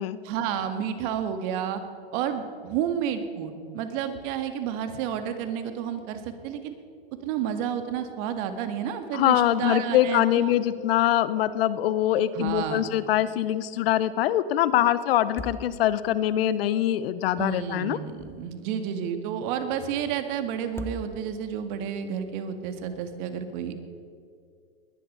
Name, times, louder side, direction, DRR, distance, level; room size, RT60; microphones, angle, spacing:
voice 1, 0.2-1.8 2.1-6.7 7.2-10.5 12.3-12.9 17.4-23.8, right 8 dB, 50° right, 8 dB, 1.9 m, -30 dB
voice 2, 9.1-18.0, left 12 dB, 70° left, 15 dB, 0.9 m, -23 dB
sound 1, 12.4-12.9 13.2-13.3 15.1-16.2 17.9-18.8 20.6-21.6, left 2 dB, 10° left, 0.7 m, -41 dB
20.5 x 10.5 x 5.6 m, 2.3 s
hypercardioid pair, 115°, 31 cm